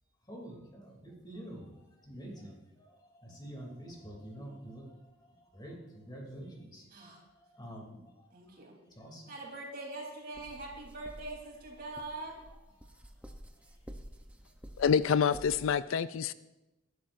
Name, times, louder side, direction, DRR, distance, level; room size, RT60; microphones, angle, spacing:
voice 1, 0.2-9.4 12.5-13.9 14.4-14.5, right 1 dB, 20° left, 2.9 m, -49 dB
voice 2, 8.3-8.8 9.3-12.4, right 2 dB, 45° right, 3.6 m, -43 dB
sound 1, 10.3-15.8, equal, 5° right, 0.7 m, -51 dB
voice 3, 14.8-16.3, left 7 dB, 65° left, 0.3 m, -27 dB
20.0 x 12.0 x 2.6 m
head